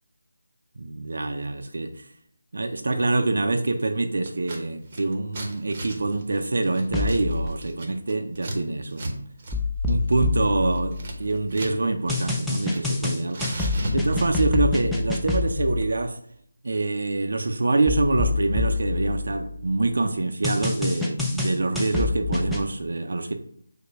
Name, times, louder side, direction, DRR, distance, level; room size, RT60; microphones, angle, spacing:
voice 1, 0.8-2.1 2.5-9.2 9.9-13.5 13.9-16.2 16.6-23.3, right 2 dB, 65° right, 6 dB, 0.5 m, -25 dB
Scissors, 4.3-4.6 4.9-8.6 8.9-9.1 9.4-9.6 9.9-11.8 12.1-13.0 13.3-14.4, right 1 dB, 30° right, 0.8 m, -35 dB
sound 1, 6.9-7.5 9.5-11.4 12.1-15.8 17.9-19.7 20.4-22.7, left 3 dB, ahead, 0.4 m, -27 dB
5.0 x 2.2 x 4.5 m, 0.66 s
figure-of-eight pair, 165°, 0 cm